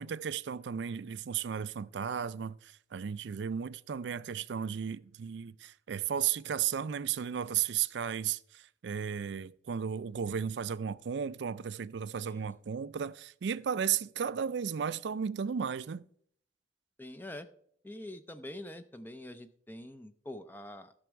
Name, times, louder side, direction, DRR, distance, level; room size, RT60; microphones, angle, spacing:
voice 1, 0.0-16.0, right 8 dB, 70° right, 0.4 m, -34 dB
voice 2, 17.0-17.5 17.8-20.9, left 1 dB, 10° left, 0.4 m, -45 dB
12.5 x 6.1 x 4.6 m
head